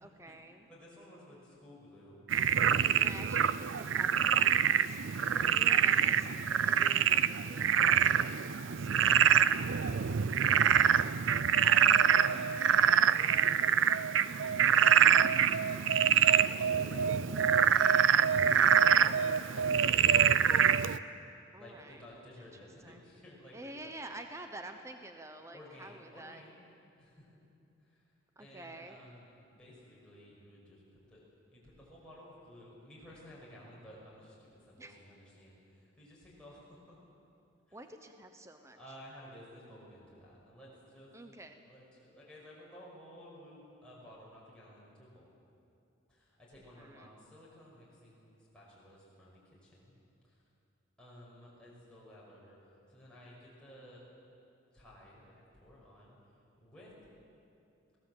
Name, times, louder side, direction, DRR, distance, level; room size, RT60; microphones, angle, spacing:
voice 1, 0.0-0.7 2.9-5.0 5.4-6.3 6.6-9.1 21.5-22.0 22.8-23.0 23.5-26.4 28.4-29.0 34.8-34.9 37.7-38.8 41.1-41.6 46.8-47.1, right 2 dB, 15° right, 6 dB, 0.9 m, -49 dB
voice 2, 0.7-2.2 3.1-3.4 5.3-7.0 9.4-18.1 18.8-19.7 21.6-23.9 25.5-26.6 27.0-27.3 27.8-28.0 28.4-31.2 31.5-37.0 37.7-37.8 38.8-41.3 41.7-45.3 46.1-50.0 50.2-50.4 51.0-52.6 52.9-54.0 54.7-56.2 56.6-56.9, equal, 5° left, -7 dB, 5.8 m, -54 dB
Frog, 2.3-21.0, right 8 dB, 75° right, 0.5 m, -25 dB
22.5 x 17.5 x 7.8 m, 2.7 s
head